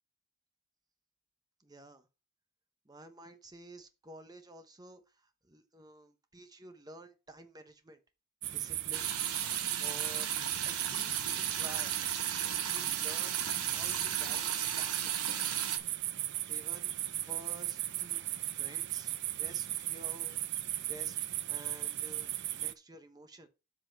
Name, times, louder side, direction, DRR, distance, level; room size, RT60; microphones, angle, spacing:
voice 1, 1.6-2.1 2.8-8.0 8.5-9.1 9.6-10.3 10.6-12.0 12.6-15.3 16.5-16.9 17.2-18.3 18.5-20.4 20.9-23.5, right 1 dB, 15° right, 1.0 m, -52 dB
sound 1, 8.4-22.7, right 14 dB, 55° right, 0.5 m, -36 dB
sound 2, 8.9-15.8, right 8 dB, 90° right, 1.1 m, -36 dB
7.8 x 4.1 x 6.4 m
head